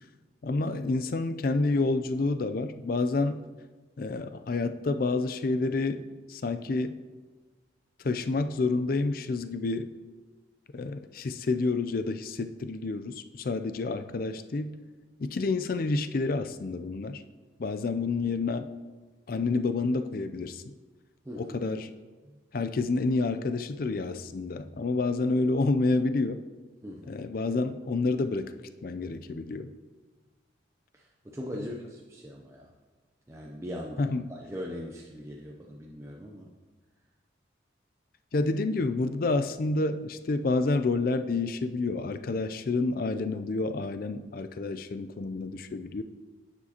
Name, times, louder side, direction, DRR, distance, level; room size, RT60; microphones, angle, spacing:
voice 1, 0.4-3.4 4.0-6.0 6.3-6.9 8.0-9.9 10.7-14.7 15.2-17.2 17.6-18.7 19.3-20.7 21.4-21.9 22.5-26.4 27.1-28.5 28.8-29.7 34.0-34.2 38.3-46.0, left 3 dB, 50° left, 10 dB, 0.4 m, -29 dB
voice 2, 21.2-21.6 22.2-22.4 26.8-27.1 30.9-32.7 33.3-36.5, equal, 15° right, -1 dB, 0.5 m, -40 dB
10.5 x 7.2 x 2.9 m, 1.3 s
head